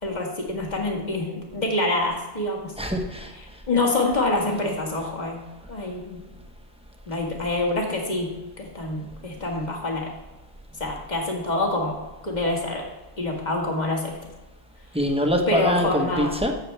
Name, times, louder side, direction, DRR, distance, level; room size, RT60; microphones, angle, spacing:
voice 1, 0.0-2.7 3.7-5.4 5.7-6.2 7.1-8.3 8.6-10.1 10.8-12.8 13.2-14.1 15.5-16.3, left 2 dB, 40° left, 0 dB, 2.0 m, -26 dB
voice 2, 2.8-3.6 14.9-16.5, equal, 5° right, 2 dB, 1.1 m, -24 dB
16.0 x 6.9 x 3.4 m, 1.1 s
omnidirectional pair, 1.1 m